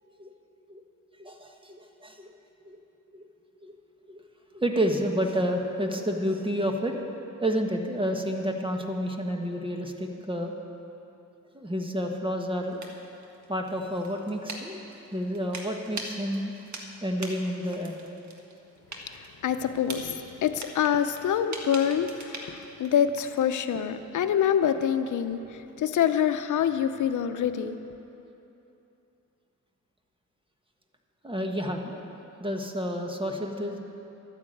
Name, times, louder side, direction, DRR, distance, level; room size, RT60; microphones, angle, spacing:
voice 1, 1.2-2.3 2.6-2.8 3.1-3.2 3.6-3.7 4.1-4.2 4.5-10.5 11.5-12.8 13.5-14.8 15.1-16.5 17.0-18.0 31.2-32.0 32.4-33.8, equal, 15° right, 2 dB, 1.4 m, -30 dB
sound 1, 12.7-23.7, right 2 dB, 70° right, 1.6 m, -43 dB
voice 2, 19.1-27.8, left 9 dB, 75° left, 8 dB, 0.7 m, -26 dB
12.0 x 9.6 x 7.9 m, 2.9 s
cardioid pair, 85°, 30 cm